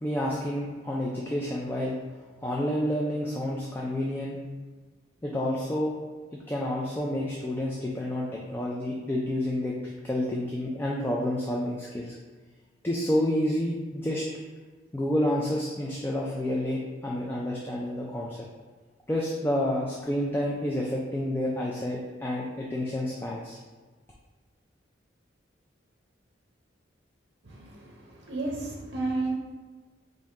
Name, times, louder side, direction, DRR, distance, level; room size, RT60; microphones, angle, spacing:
voice 1, 0.0-2.0 2.4-4.4 5.2-5.9 6.5-12.1 12.8-14.2 14.9-18.4 19.1-23.6, left 1 dB, 10° left, -3 dB, 0.3 m, -29 dB
voice 2, 27.4-29.3, right 2 dB, 60° right, -3 dB, 0.6 m, -32 dB
4.1 x 2.6 x 3.6 m, 1.4 s
head